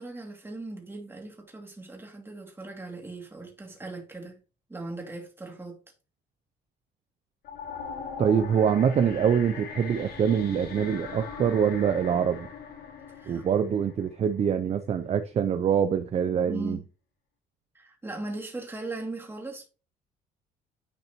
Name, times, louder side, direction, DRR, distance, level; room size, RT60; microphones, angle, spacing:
voice 1, 0.0-4.4 4.7-5.8 13.2-13.4 16.5-16.8 17.7-19.7, right 2 dB, 15° right, 2.4 m, -38 dB
sound 1, 7.4-14.5, left 6 dB, 65° left, 2.0 m, -40 dB
voice 2, 8.2-12.5 13.3-16.8, right 7 dB, 40° right, 0.6 m, -24 dB
10.0 x 4.0 x 3.0 m
cardioid pair, 110°, 17 cm